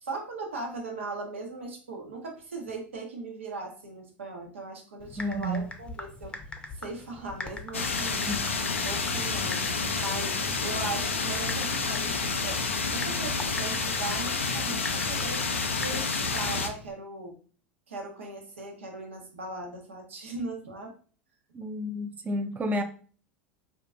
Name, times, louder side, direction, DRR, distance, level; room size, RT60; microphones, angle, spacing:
voice 1, 0.0-6.3 6.7-8.2 8.8-9.6 10.0-12.6 12.9-15.4 15.8-17.4 17.9-20.9, right 3 dB, 80° right, 0.9 m, -38 dB
Typing, 5.0-16.9, left 3 dB, 15° left, 0.7 m, -43 dB
voice 2, 5.2-5.7 8.3-8.4 21.5-22.8, equal, 25° right, 0.6 m, -31 dB
sound 1, 7.7-16.7, left 4 dB, 90° left, 0.4 m, -29 dB
3.7 x 2.5 x 2.5 m
hypercardioid pair, 80°, 7 cm